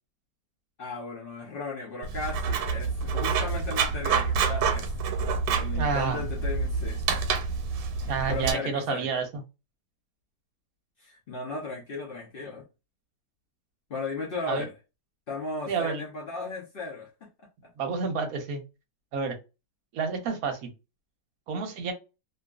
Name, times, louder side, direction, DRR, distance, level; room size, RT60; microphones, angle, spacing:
voice 1, 0.8-4.9 5.6-7.2 7.9-9.2 11.0-12.6 13.9-14.7 15.3-17.1, left 3 dB, 80° left, 0.5 m, -36 dB
Writing, 2.0-8.5, right 5 dB, 90° right, 1.2 m, -28 dB
voice 2, 5.7-6.2 8.1-9.4 14.5-14.7 15.7-16.0 17.8-18.6 19.1-19.4 19.9-20.7 21.5-21.9, right 5 dB, 65° right, 1.0 m, -29 dB
2.7 x 2.3 x 2.3 m
omnidirectional pair, 1.8 m